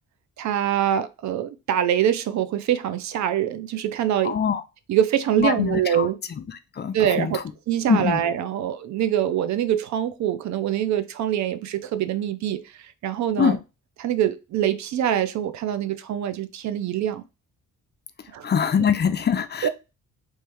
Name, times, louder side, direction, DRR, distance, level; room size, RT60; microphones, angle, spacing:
voice 1, 0.4-4.3 4.9-6.2 6.9-13.5 14.0-17.2 18.3-18.5 19.6-19.7, right 10 dB, 70° right, 0.6 m, -24 dB
voice 2, 4.2-4.6 5.4-6.1 6.5-7.4 7.9-8.2 13.4-13.6 18.4-19.7, left 7 dB, 35° left, 0.5 m, -23 dB
3.2 x 3.1 x 3.4 m
cardioid pair, 90°, 30 cm